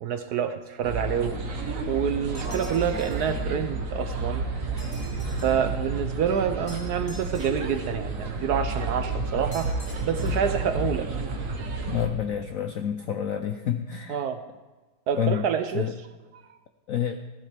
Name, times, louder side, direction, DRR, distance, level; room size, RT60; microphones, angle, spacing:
voice 1, 0.0-1.4 1.9-4.4 5.4-9.7 10.0-11.1 14.1-14.4 15.1-15.9 16.3-16.4, right 8 dB, 70° right, 9 dB, 1.0 m, -27 dB
sound 1, 0.8-12.1, right 2 dB, 45° right, 1.6 m, -31 dB
sound 2, 2.4-3.3 4.8-5.7 6.7-7.9 9.5-10.5, left 1 dB, 40° left, 2.6 m, -48 dB
voice 2, 11.9-14.2 15.2-15.4 15.7-15.9 16.9-17.2, left 10 dB, 75° left, 7 dB, 0.7 m, -28 dB
16.0 x 14.0 x 3.4 m, 1.2 s
omnidirectional pair, 2.1 m